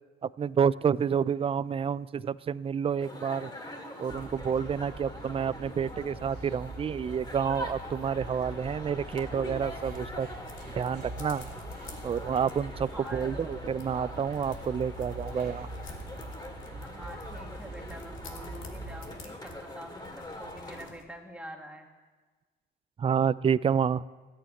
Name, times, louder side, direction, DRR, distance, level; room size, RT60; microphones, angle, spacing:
voice 1, 0.2-3.5 4.0-10.3 10.8-11.5 12.0-15.7 23.0-24.0, right 7 dB, 30° right, 17 dB, 0.4 m, -29 dB
sound 1, 3.0-20.9, left 1 dB, 20° left, 2.3 m, -43 dB
sound 2, 4.1-19.2, right 2 dB, 50° right, 2.5 m, -43 dB
sound 3, 9.3-21.0, left 5 dB, 80° left, 2.2 m, -52 dB
voice 2, 12.9-13.3 16.8-21.9, right 1 dB, 5° right, 1 dB, 2.3 m, -46 dB
14.0 x 8.5 x 8.9 m, 1.3 s
cardioid pair, 90°, 20 cm